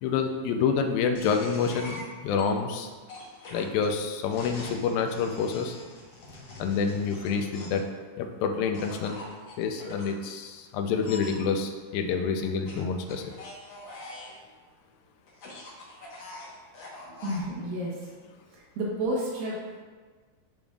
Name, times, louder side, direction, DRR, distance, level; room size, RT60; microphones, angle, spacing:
voice 1, 0.0-2.9 3.5-5.8 6.6-7.8 8.2-9.2 9.6-13.3, left 6 dB, 85° left, 5 dB, 2.4 m, -28 dB
sound 1, 1.1-2.4 3.1-7.9 8.7-10.1 11.0-11.4 12.7-14.4 15.3-17.5, left 2 dB, 60° left, 1.2 m, -43 dB
voice 2, 17.1-18.1 18.5-19.8, right 1 dB, 85° right, -5 dB, 3.0 m, -32 dB
11.0 x 5.2 x 2.4 m, 1.5 s
omnidirectional pair, 4.0 m